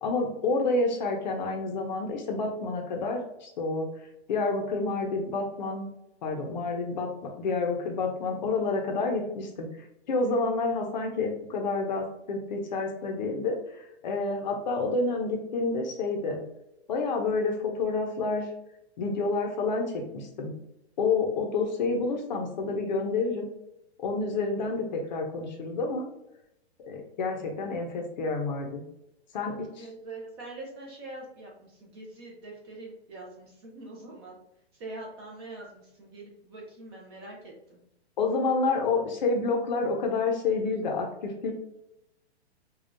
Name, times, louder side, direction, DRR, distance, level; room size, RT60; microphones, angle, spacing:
voice 1, 0.0-3.9 4.3-5.9 6.2-9.7 10.1-16.4 16.9-18.5 19.0-20.5 21.0-23.5 24.0-26.0 26.8-28.9 29.3-29.8 38.2-41.5, left 3 dB, 45° left, 3 dB, 0.7 m, -29 dB
voice 2, 29.4-34.4 34.7-37.8, right 2 dB, 25° right, -1 dB, 0.6 m, -44 dB
5.1 x 2.3 x 2.5 m, 0.83 s
hypercardioid pair, 165°, 33 cm